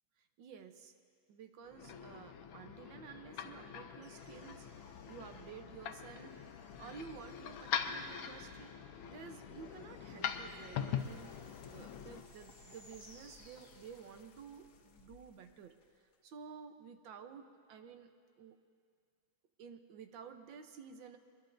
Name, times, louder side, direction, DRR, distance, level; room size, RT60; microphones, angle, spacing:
voice 1, 0.4-0.9 1.3-6.4 6.8-8.7 9.1-11.3 11.7-15.7 16.2-18.1 18.4-18.6 19.6-21.2, right 6 dB, 75° right, 7 dB, 1.6 m, -52 dB
sound 1, 1.6-12.2, left 8 dB, 85° left, 1.6 m, -43 dB
sound 2, 4.0-14.3, equal, 5° right, 3.6 m, -65 dB
sound 3, 11.0-16.4, left 5 dB, 60° left, 1.3 m, -61 dB
24.0 x 21.0 x 2.6 m, 2.1 s
omnidirectional pair, 2.1 m